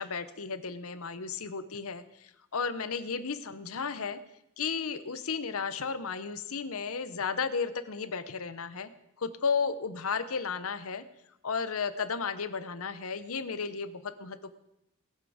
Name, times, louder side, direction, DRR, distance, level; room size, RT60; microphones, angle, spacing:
voice 1, 0.0-4.2 4.6-8.9 9.2-11.0 11.4-14.6, left 5 dB, 75° left, 11 dB, 0.9 m, -34 dB
20.0 x 7.5 x 5.0 m, 0.84 s
head